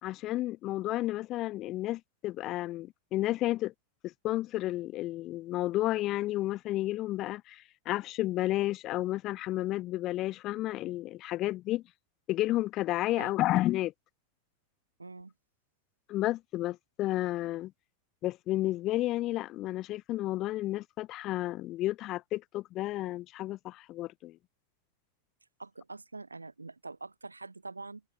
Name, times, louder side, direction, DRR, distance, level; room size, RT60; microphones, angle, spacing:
voice 1, 0.0-3.7 4.0-11.8 12.3-13.9 16.1-17.7 18.2-24.4, left 16 dB, 35° left, 1.1 m, -32 dB
voice 2, 15.0-15.3 25.6-28.0, right 3 dB, 80° right, 0.9 m, -44 dB
figure-of-eight pair, 90°, 0 cm